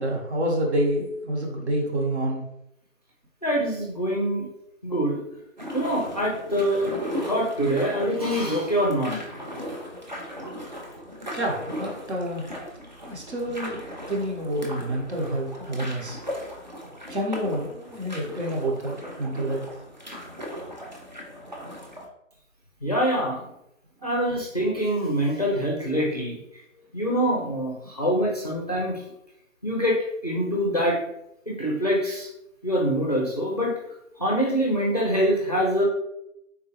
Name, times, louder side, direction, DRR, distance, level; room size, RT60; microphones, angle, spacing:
voice 1, 0.0-2.4 11.3-12.4 13.0-16.2 17.1-19.6, right 1 dB, 55° right, 0 dB, 0.9 m, -28 dB
voice 2, 3.4-4.4 4.8-5.2 5.7-9.1 22.8-23.5 24.0-26.4 26.9-29.0 29.6-30.0 30.2-31.0 31.5-32.3 32.6-33.7 34.2-35.8, equal, 30° left, -3 dB, 0.4 m, -24 dB
sound 1, 5.6-22.0, equal, 35° right, 0.4 m, -37 dB
3.7 x 2.3 x 2.9 m, 0.82 s
figure-of-eight pair, 150°, 40 cm